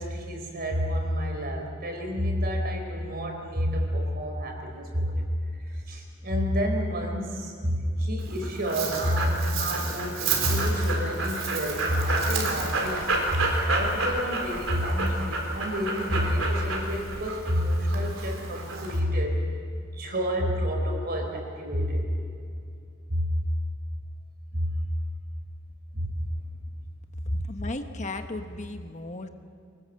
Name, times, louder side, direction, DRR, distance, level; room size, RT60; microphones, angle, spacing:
voice 1, 0.0-5.2 5.7-19.4 19.8-22.0 23.1-23.3 24.5-24.7 25.9-26.1, equal, 50° right, 3 dB, 4.6 m, -28 dB
Dog, 8.2-19.0, right 3 dB, 80° right, 4.1 m, -30 dB
voice 2, 27.3-29.3, left 1 dB, 35° left, 6 dB, 1.1 m, -33 dB
25.0 x 19.5 x 7.7 m, 2.4 s
head